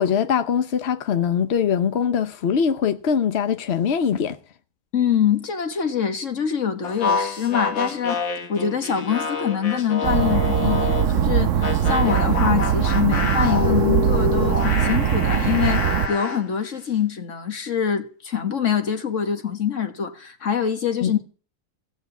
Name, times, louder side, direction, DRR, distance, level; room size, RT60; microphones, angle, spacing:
voice 1, 0.0-4.4 21.0-21.1, left 7 dB, 60° left, 0.6 m, -22 dB
voice 2, 4.9-8.2 8.5-21.2, left 8 dB, 45° left, 1.6 m, -24 dB
sound 1, 6.8-11.2 11.6-16.4, left 5 dB, 80° left, 2.5 m, -27 dB
sound 2, 10.0-16.1, right 9 dB, 60° right, 0.9 m, -21 dB
16.0 x 6.8 x 8.2 m
omnidirectional pair, 2.1 m